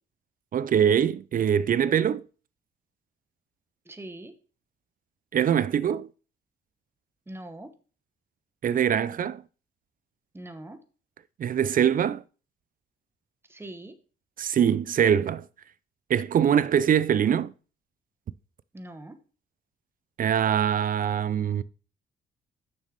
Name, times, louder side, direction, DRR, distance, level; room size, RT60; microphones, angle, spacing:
voice 1, 0.5-2.2 5.3-6.1 8.6-9.4 11.4-12.2 14.4-15.4 16.1-17.5 20.2-21.6, right 9 dB, 45° right, 0.4 m, -23 dB
voice 2, 3.9-4.3 7.3-7.7 10.3-10.8 13.5-13.9 18.7-19.2, right 1 dB, 10° right, 1.1 m, -41 dB
6.6 x 6.3 x 5.1 m
cardioid pair, 90°, 20 cm